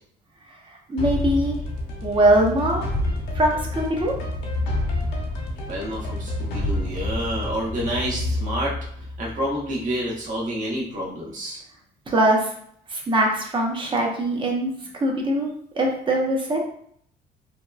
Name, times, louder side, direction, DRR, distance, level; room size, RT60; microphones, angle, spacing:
voice 1, 0.9-1.6 2.0-2.9 3.3-4.1 12.1-12.5 12.9-15.5 15.8-16.6, right 1 dB, 30° right, 0 dB, 0.7 m, -22 dB
sound 1, 1.0-9.8, left 1 dB, 85° left, 0.7 m, -28 dB
voice 2, 5.6-8.8 9.2-11.6, equal, 50° right, -3 dB, 0.9 m, -28 dB
2.8 x 2.2 x 2.3 m, 0.65 s
cardioid pair, 110°, 17 cm